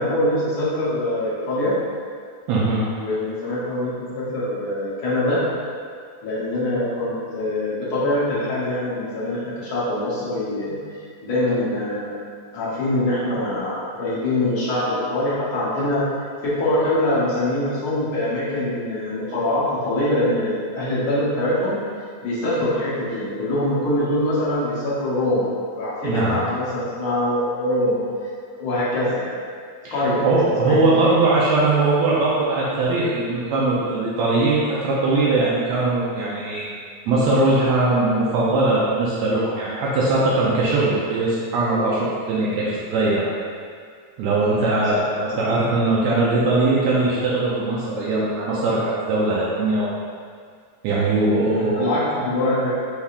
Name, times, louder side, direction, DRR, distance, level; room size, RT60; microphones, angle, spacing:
voice 1, 0.0-1.7 3.0-5.4 6.2-12.2 12.5-16.0 16.4-21.8 22.2-25.5 25.8-29.3 29.9-30.2 30.6-31.0 44.5-44.8 45.5-45.6 51.5-52.8, left 1 dB, 65° left, -9 dB, 1.4 m, -24 dB
voice 2, 2.5-2.8 26.0-26.4 29.8-36.7 37.1-43.2 44.2-50.0 50.8-51.9, right 2 dB, 80° right, -6 dB, 1.8 m, -20 dB
5.6 x 3.4 x 2.4 m, 2.1 s
omnidirectional pair, 3.3 m